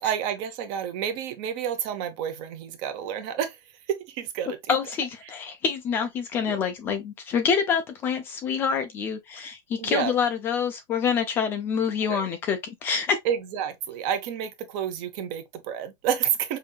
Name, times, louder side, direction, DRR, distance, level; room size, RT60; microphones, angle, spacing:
voice 1, 0.0-3.6 3.9-4.7 6.5-6.6 9.8-10.1 12.1-12.2 13.2-16.6, right 9 dB, 35° right, 0.7 m, -29 dB
voice 2, 4.7-13.2, left 6 dB, 15° left, 0.3 m, -26 dB
5.2 x 2.7 x 2.2 m
supercardioid pair, 175°, 13 cm